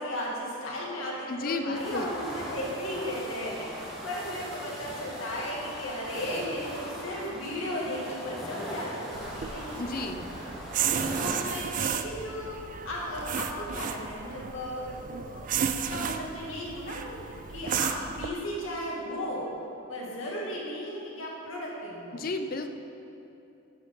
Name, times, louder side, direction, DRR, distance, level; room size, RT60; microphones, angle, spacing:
voice 1, 0.0-9.8 11.0-12.6 12.8-17.1 17.5-19.4 19.9-22.2, equal, 80° left, -5 dB, 2.1 m, -35 dB
voice 2, 1.3-2.1 9.8-10.2 22.1-22.8, left 3 dB, 45° left, 7 dB, 0.4 m, -32 dB
sound 1, 1.7-11.4, equal, ahead, 1.5 m, -39 dB
sound 2, 9.1-18.3, right 7 dB, 40° right, 0.3 m, -33 dB
12.5 x 6.2 x 3.8 m, 2.8 s
head